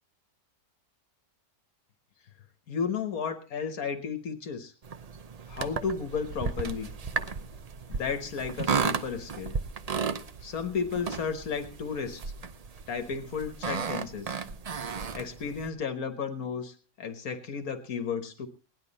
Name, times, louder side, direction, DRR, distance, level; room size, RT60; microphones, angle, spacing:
voice 1, 2.7-4.7 5.5-6.9 7.9-9.6 10.4-12.3 12.9-14.3 15.1-18.5, left 6 dB, 70° left, 9 dB, 1.7 m, -33 dB
sound 1, 4.8-15.7, right 5 dB, 50° right, 0.4 m, -34 dB
18.0 x 10.5 x 4.1 m, 0.37 s
omnidirectional pair, 1.6 m